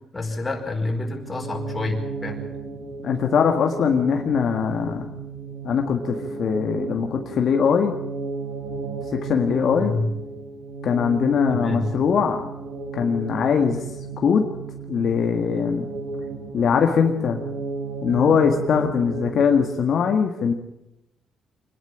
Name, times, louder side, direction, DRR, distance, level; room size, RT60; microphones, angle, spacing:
voice 1, 0.1-2.4 9.7-10.1 11.5-11.9, left 2 dB, 20° left, 2 dB, 4.9 m, -28 dB
sound 1, 1.2-20.0, right 4 dB, 85° right, 6.0 m, -34 dB
voice 2, 3.0-5.1 5.6-7.9 9.2-9.9 10.8-12.5 12.9-13.8 14.2-14.5 14.9-15.9 16.5-17.4 18.0-20.5, left 6 dB, 60° left, 4 dB, 1.7 m, -21 dB
25.0 x 11.0 x 10.0 m, 0.91 s
cardioid pair, 90°, 0 cm